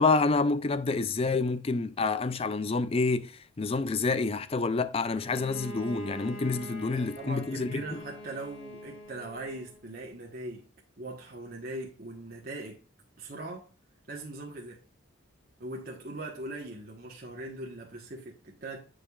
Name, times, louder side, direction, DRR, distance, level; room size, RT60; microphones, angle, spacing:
voice 1, 0.0-3.3 3.6-8.0, left 3 dB, 30° left, 0.4 m, -28 dB
Bowed string instrument, 5.1-9.8, equal, 85° left, 2.7 m, -44 dB
voice 2, 6.9-10.7 11.0-12.8 13.2-13.7 14.1-14.8 15.6-18.9, right 2 dB, 45° right, 1.2 m, -40 dB
8.7 x 5.0 x 2.4 m
head